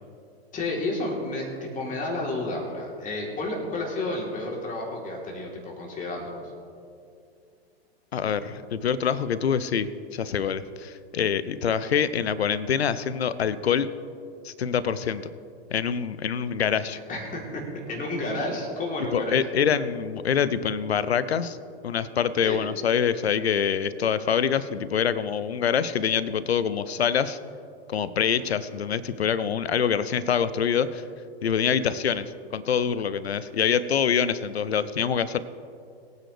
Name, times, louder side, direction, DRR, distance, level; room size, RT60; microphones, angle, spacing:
voice 1, 0.5-6.4 17.1-17.6 17.9-19.4 22.4-22.6, left 2 dB, 25° left, -2 dB, 3.6 m, -31 dB
voice 2, 8.1-13.9 14.4-15.3 15.7-17.0 19.1-21.6 21.8-27.4 27.9-31.0 31.4-35.4, left 7 dB, 80° left, 15 dB, 0.7 m, -25 dB
22.0 x 9.4 x 3.4 m, 2.5 s
figure-of-eight pair, 100°, 32 cm